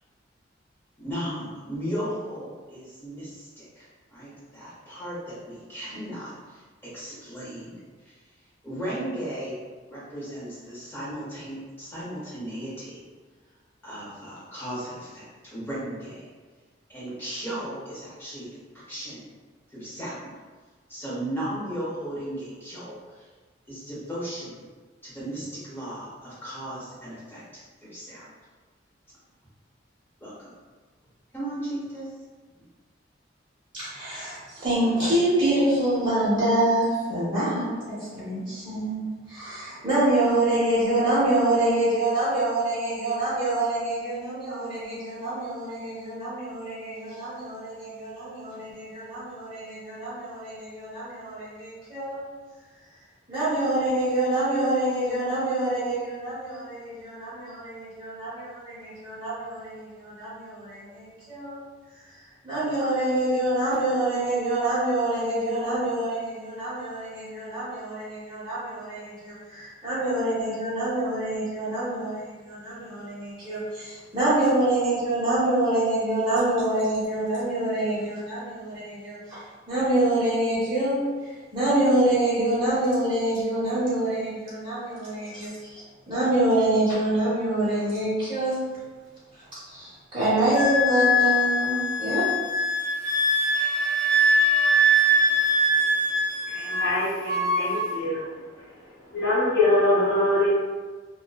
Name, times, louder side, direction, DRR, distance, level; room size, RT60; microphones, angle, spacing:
voice 1, 1.0-6.6 6.9-7.8 8.6-9.6 9.9-13.0 13.8-16.2 16.9-18.5 18.9-19.3 19.7-20.3 20.9-23.0 23.7-24.6 25.0-27.4 27.8-28.3 30.2-30.5 31.3-32.1, right 1 dB, 10° left, -9 dB, 0.8 m, -35 dB
voice 2, 33.7-37.7 38.1-52.2 53.3-61.6 62.4-79.4 79.7-81.1 81.5-85.8 86.1-88.6 89.7-92.3, right 1 dB, 25° right, -13 dB, 1.0 m, -26 dB
Wind instrument woodwind instrument, 90.5-97.0 97.3-97.9, equal, 45° right, 0.7 m, -22 dB
voice 3, 96.5-98.3 99.1-100.5, left 1 dB, 85° left, -13 dB, 1.0 m, -23 dB
2.5 x 2.1 x 2.3 m, 1.4 s
head